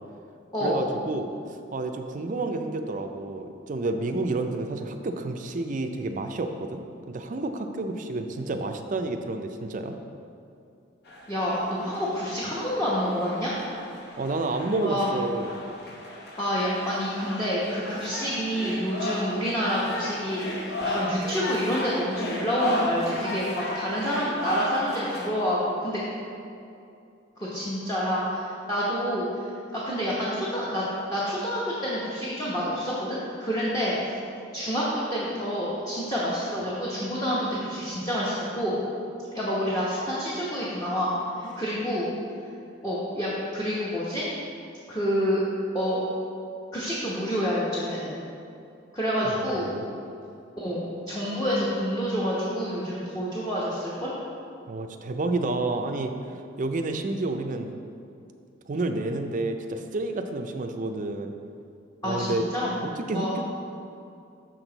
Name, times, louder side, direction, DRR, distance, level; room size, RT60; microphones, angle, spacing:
voice 1, 0.6-1.3 1.7-9.9 14.2-15.6 41.4-41.6 49.2-49.8 54.7-56.1 56.6-57.7 58.7-61.3 62.0-62.5 62.8-63.4, right 2 dB, 45° right, 6 dB, 0.4 m, -30 dB
sound 1, 11.0-25.3, left 1 dB, 55° left, 0.9 m, -34 dB
voice 2, 11.3-13.5 14.8-15.1 16.4-20.6 20.9-26.0 27.4-29.4 29.7-34.1 34.5-38.8 39.3-42.1 42.8-44.2 44.9-45.4 45.7-46.0 46.7-48.1 48.9-49.7 50.6-54.1 62.0-62.8 63.1-63.3, equal, 20° left, -8 dB, 0.9 m, -28 dB
6.4 x 6.2 x 3.9 m, 2.6 s
head